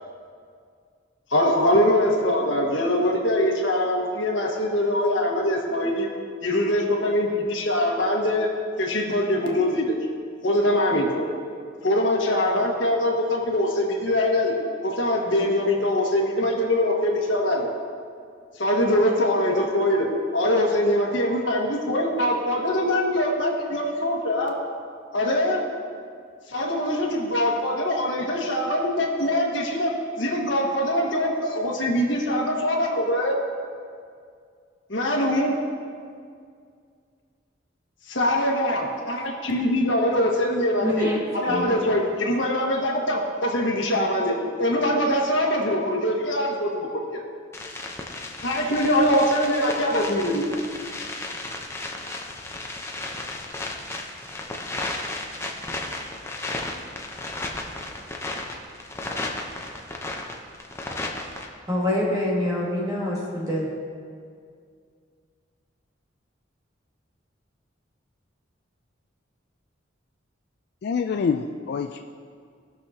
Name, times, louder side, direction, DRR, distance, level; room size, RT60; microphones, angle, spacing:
voice 1, 1.3-6.1 6.4-8.5 8.8-10.0 10.4-11.3 11.8-14.5 14.8-17.7 18.6-24.5 25.1-25.6 26.5-29.9 30.2-33.4 34.9-35.5 38.1-47.2 48.4-50.6, left 1 dB, 75° left, -1 dB, 1.5 m, -23 dB
voice 2, 40.8-41.2 41.5-41.7 61.7-63.7, left 1 dB, 20° right, -5 dB, 2.0 m, -25 dB
sound 1, 47.5-61.5, left 2 dB, 15° left, 0.7 m, -34 dB
voice 3, 70.8-72.0, left 5 dB, 55° left, 5 dB, 0.3 m, -26 dB
18.0 x 6.4 x 2.8 m, 2.2 s
head